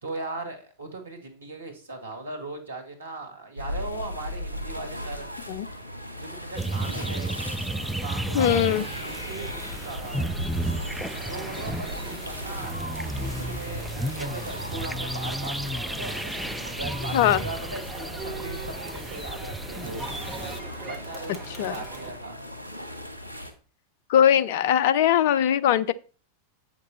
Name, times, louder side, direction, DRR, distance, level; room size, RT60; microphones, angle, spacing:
voice 1, 0.0-5.3 6.4-7.4 7.9-10.5 11.3-12.0 12.3-16.3 16.8-20.0 20.9-22.5, right 2 dB, 75° right, 1.9 m, -38 dB
sound 1, 3.6-23.5, equal, 85° left, 1.5 m, -38 dB
sound 2, 6.5-20.6, right 1 dB, ahead, 0.5 m, -33 dB
voice 2, 8.3-8.8 17.1-17.4 21.6-21.7 24.1-25.9, left 10 dB, 50° left, 0.5 m, -20 dB
Crowd, 8.4-22.1, right 4 dB, 20° right, 2.3 m, -44 dB
8.4 x 6.0 x 4.1 m
figure-of-eight pair, 90°, 0 cm